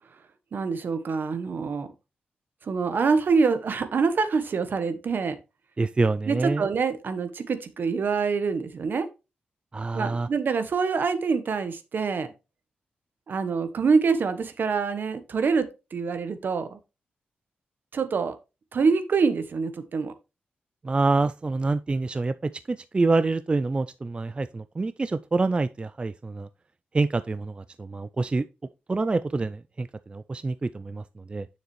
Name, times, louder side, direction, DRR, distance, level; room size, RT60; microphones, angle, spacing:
voice 1, 0.5-1.9 2.6-5.4 6.3-9.1 9.9-12.3 13.3-16.8 17.9-18.4 18.7-20.1, right 5 dB, 65° right, 1.0 m, -25 dB
voice 2, 5.8-6.7 9.7-10.3 20.8-26.5 26.9-28.4 28.9-31.5, right 3 dB, 30° right, 0.3 m, -26 dB
6.9 x 6.5 x 3.1 m
cardioid pair, 60°, 4 cm